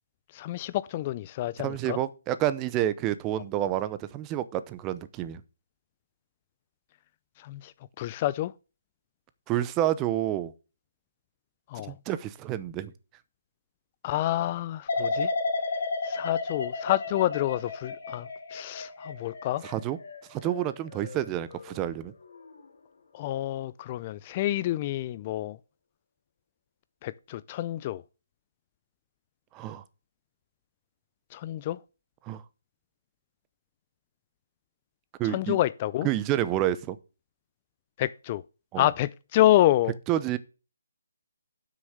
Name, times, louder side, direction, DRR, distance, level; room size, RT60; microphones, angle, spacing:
voice 1, 0.3-2.0 7.4-8.5 11.7-11.9 14.0-15.3 16.0-19.6 23.1-25.6 27.0-28.0 31.3-31.8 35.2-36.1 38.0-38.4 38.8-40.0, left 14 dB, 30° left, 0.4 m, -28 dB
voice 2, 1.6-5.4 9.5-10.5 11.9-12.9 19.6-20.0 20.3-22.1 29.5-29.8 32.3-32.4 35.2-35.6 36.0-37.0 38.7-38.9 40.1-40.4, right 12 dB, 20° right, 0.7 m, -29 dB
sound 1, 14.9-21.8 22.2-22.7, left 3 dB, 65° left, 3.1 m, -33 dB
7.8 x 6.4 x 6.5 m
hypercardioid pair, 155°, 0 cm